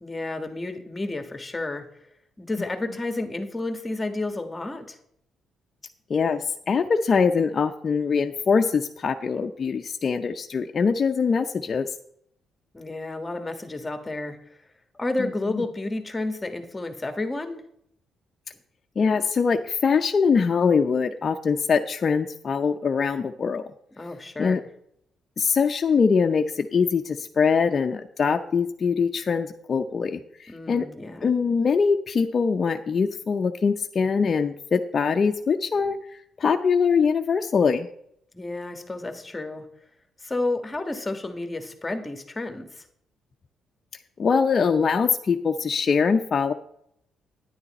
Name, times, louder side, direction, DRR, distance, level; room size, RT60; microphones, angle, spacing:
voice 1, 0.0-1.9 2.4-5.0 12.7-14.6 14.9-17.6 24.0-24.7 30.5-31.3 38.3-39.7 40.2-42.8, left 2 dB, 20° left, 7 dB, 1.4 m, -31 dB
voice 2, 6.1-11.9 15.2-15.6 19.0-23.6 24.4-24.6 25.4-30.9 31.2-37.9 44.2-46.5, left 5 dB, 45° left, 4 dB, 0.6 m, -23 dB
9.9 x 9.8 x 4.2 m, 0.71 s
cardioid pair, 90°, 0 cm